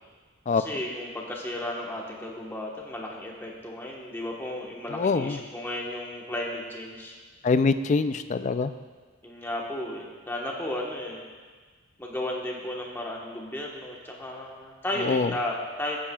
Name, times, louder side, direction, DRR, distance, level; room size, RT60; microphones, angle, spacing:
voice 1, 0.5-7.2 9.2-11.2 12.0-16.0, left 1 dB, 10° left, -2 dB, 1.2 m, -34 dB
voice 2, 4.9-5.4 7.4-8.7 15.0-15.3, left 4 dB, 35° left, 11 dB, 0.3 m, -24 dB
14.5 x 8.7 x 2.3 m, 1.5 s
head